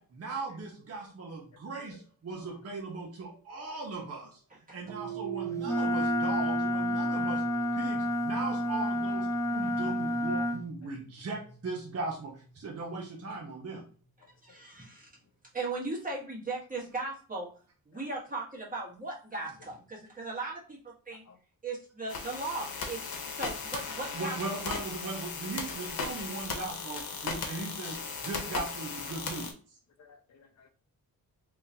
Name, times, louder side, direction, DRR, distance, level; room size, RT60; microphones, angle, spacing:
voice 1, 0.0-4.4 4.7-7.4 7.7-13.8 24.1-29.5, right 3 dB, 40° right, 0.9 m, -38 dB
sound 1, 4.8-13.3, right 9 dB, 75° right, 0.8 m, -42 dB
Wind instrument woodwind instrument, 5.6-10.6, left 1 dB, 10° left, 0.4 m, -29 dB
voice 2, 14.4-15.1 15.5-17.5 17.9-21.2 21.6-24.6, right 3 dB, 25° right, 1.5 m, -37 dB
sound 2, 22.1-29.5, left 5 dB, 75° left, 1.0 m, -37 dB
voice 3, 30.0-30.7, left 5 dB, 45° left, 0.7 m, -55 dB
3.8 x 3.0 x 2.8 m
wide cardioid pair, 135°, 36 cm